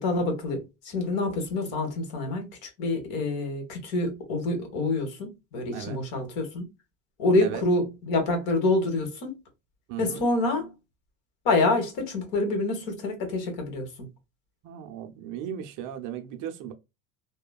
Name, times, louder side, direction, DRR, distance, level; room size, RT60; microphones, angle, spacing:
voice 1, 0.0-6.7 7.2-9.4 10.0-10.7 11.4-14.1, left 2 dB, 60° left, 1.5 m, -27 dB
voice 2, 9.9-10.2 14.6-16.7, right 9 dB, 50° right, 0.6 m, -36 dB
2.9 x 2.2 x 2.3 m
supercardioid pair, 130°, 39 cm